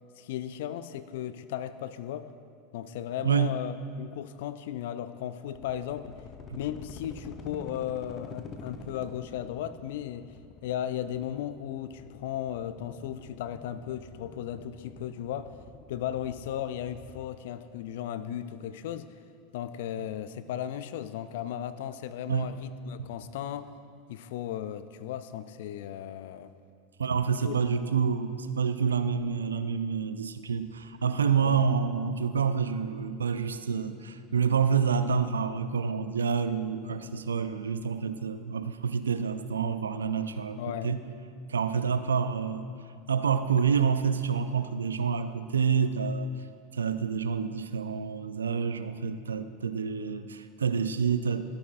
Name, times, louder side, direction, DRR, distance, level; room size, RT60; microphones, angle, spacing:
voice 1, 0.2-2.3 2.7-6.2 6.5-10.3 10.6-15.5 15.9-19.2 19.5-23.7 24.1-26.5 27.5-27.6 27.9-28.0 31.3-31.7 40.6-40.9, left 10 dB, 70° left, 13 dB, 0.4 m, -36 dB
voice 2, 3.2-3.5 6.5-6.6 22.3-22.6 23.0-23.1 27.0-41.0 41.5-42.7 43.1-46.3 46.7-51.4, right 6 dB, 85° right, 11 dB, 0.4 m, -28 dB
sound 1, 5.5-17.3, left 3 dB, 35° left, 0.8 m, -48 dB
13.0 x 8.4 x 2.6 m, 2.3 s
hypercardioid pair, 85°, 0 cm